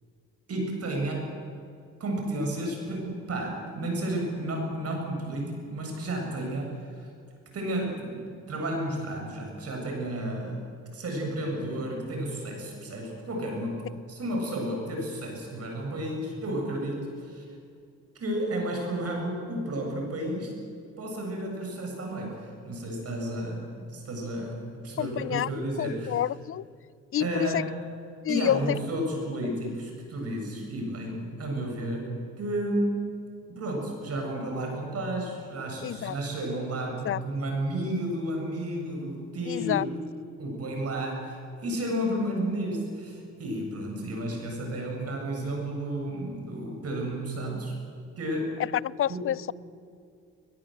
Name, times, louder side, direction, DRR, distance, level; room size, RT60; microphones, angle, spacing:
voice 1, 0.5-1.3 2.0-7.1 7.5-10.7 10.9-17.4 18.2-20.5 21.0-26.1 27.2-27.7 28.3-33.1 33.5-39.9 40.4-47.7 48.2-48.6 49.1-49.3, right 1 dB, 55° right, 1 dB, 7.6 m, -32 dB
voice 2, 25.0-26.6 27.1-27.6 28.2-28.8 35.8-36.1 37.0-37.2 39.5-39.9 48.8-49.5, left 11 dB, 45° left, 22 dB, 0.5 m, -28 dB
22.0 x 21.0 x 8.0 m, 2.4 s
cardioid pair, 90°, 30 cm